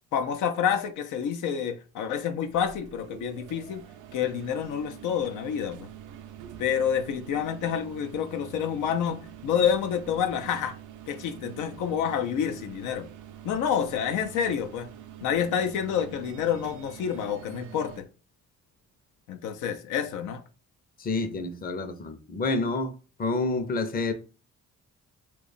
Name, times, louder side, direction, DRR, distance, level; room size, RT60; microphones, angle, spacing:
voice 1, 0.1-3.8 4.1-5.9 6.6-10.7 11.1-13.1 13.4-14.9 15.2-18.1 19.3-20.4, left 8 dB, 85° left, 0.6 m, -28 dB
sound 1, 2.4-18.0, right 11 dB, 85° right, 0.5 m, -46 dB
voice 2, 21.0-22.9 23.2-24.1, left 3 dB, 30° left, 0.6 m, -28 dB
2.9 x 2.4 x 4.0 m
cardioid pair, 90°, 30 cm